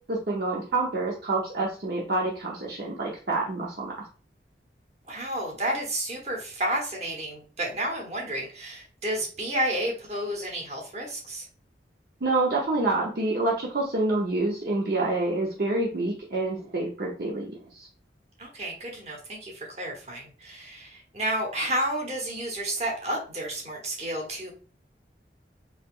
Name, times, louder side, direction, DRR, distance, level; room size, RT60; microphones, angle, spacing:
voice 1, 0.1-3.9 12.2-17.9, right 2 dB, 60° right, -3 dB, 0.7 m, -27 dB
voice 2, 5.1-11.4 18.4-24.5, right 1 dB, 40° right, -1 dB, 1.2 m, -31 dB
4.1 x 3.0 x 2.4 m, 0.39 s
head